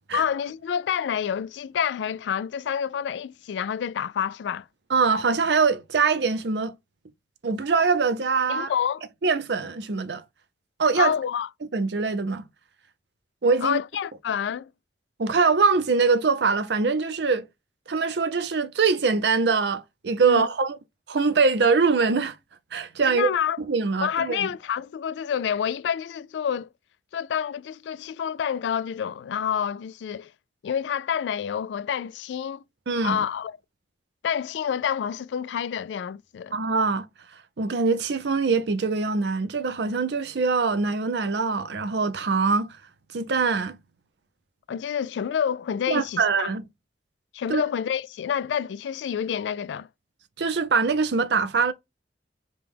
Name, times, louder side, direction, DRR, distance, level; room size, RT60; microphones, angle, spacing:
voice 1, 0.1-4.7 8.5-9.0 11.0-11.5 13.6-14.7 20.2-20.5 23.1-23.6 24.0-26.7 27.1-30.3 30.6-32.6 33.0-33.6 34.2-36.5 44.7-46.5 47.3-49.9, left 8 dB, 80° left, 0.3 m, -28 dB
voice 2, 4.9-6.7 7.4-8.7 9.2-10.2 10.8-11.1 11.7-12.4 13.4-13.8 15.2-17.5 17.9-20.8 21.1-22.4 22.7-23.3 23.7-24.5 32.9-33.2 36.5-37.1 37.6-42.8 43.1-43.8 45.9-46.6 47.5-47.6 50.4-51.7, right 4 dB, 70° right, 0.6 m, -23 dB
5.1 x 2.3 x 3.4 m
head